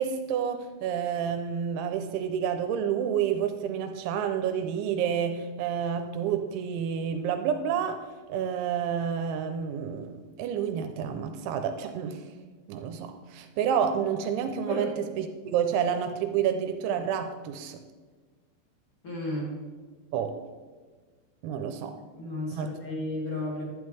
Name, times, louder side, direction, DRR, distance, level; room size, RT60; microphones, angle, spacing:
voice 1, 0.0-12.2 12.7-17.8 20.1-20.4 21.4-21.9 22.5-22.7, right 8 dB, 85° right, 7 dB, 2.9 m, -29 dB
voice 2, 19.0-19.5 22.2-23.6, left 1 dB, 40° left, -4 dB, 2.3 m, -33 dB
11.0 x 11.0 x 3.4 m, 1.4 s
omnidirectional pair, 5.6 m